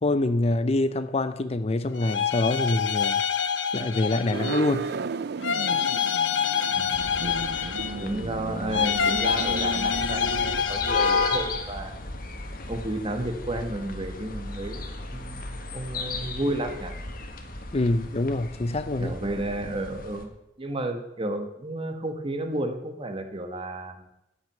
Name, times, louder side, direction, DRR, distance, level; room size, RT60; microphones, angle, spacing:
voice 1, 0.0-3.2 3.7-4.9 17.7-19.2, left 2 dB, 35° left, 12 dB, 0.5 m, -25 dB
sound 1, 1.9-4.8 5.4-8.2 8.7-11.7, left 7 dB, 70° left, 0.8 m, -27 dB
sound 2, 4.3-10.6, right 4 dB, 60° right, 0.5 m, -34 dB
voice 2, 6.7-7.1 8.0-12.0 12.7-16.9 19.0-20.3 20.6-24.1, right 1 dB, 30° right, 5 dB, 1.4 m, -32 dB
sound 3, 6.9-20.2, left 3 dB, 50° left, 1.5 m, -34 dB
13.0 x 6.2 x 9.0 m, 0.89 s
head